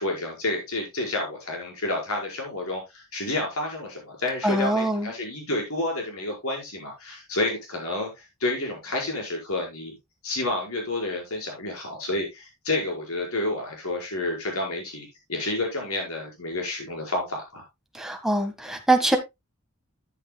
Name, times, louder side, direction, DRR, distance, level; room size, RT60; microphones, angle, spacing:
voice 1, 0.0-9.9 10.2-17.6, left 2 dB, 90° left, 1 dB, 5.1 m, -30 dB
voice 2, 4.4-5.1 17.9-19.2, right 1 dB, ahead, 4 dB, 1.6 m, -23 dB
13.0 x 8.2 x 2.3 m, 0.21 s
head